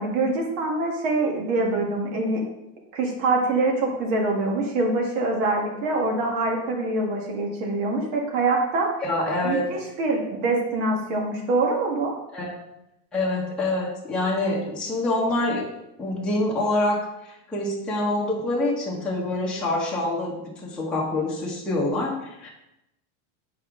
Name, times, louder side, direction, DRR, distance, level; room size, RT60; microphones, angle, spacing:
voice 1, 0.0-2.4 2.9-8.9 9.4-12.1, right 2 dB, 65° right, 0 dB, 1.9 m, -24 dB
voice 2, 9.0-9.6 12.3-12.7 13.1-15.7 16.0-22.5, left 2 dB, ahead, -6 dB, 1.1 m, -26 dB
7.7 x 4.8 x 3.8 m, 0.87 s
cardioid pair, 165°, 41 cm